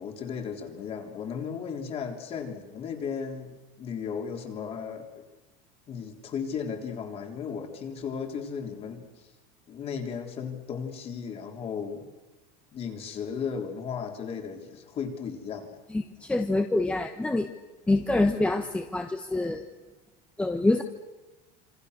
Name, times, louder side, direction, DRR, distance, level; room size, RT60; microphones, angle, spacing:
voice 1, 0.0-5.2 5.9-9.3 9.7-12.1 12.7-15.8, left 6 dB, 30° left, 4 dB, 3.6 m, -35 dB
voice 2, 15.9-17.5 17.9-19.6 20.4-20.8, left 2 dB, 5° left, 6 dB, 1.0 m, -26 dB
28.5 x 27.0 x 6.7 m, 1.2 s
cardioid pair, 165°, 20 cm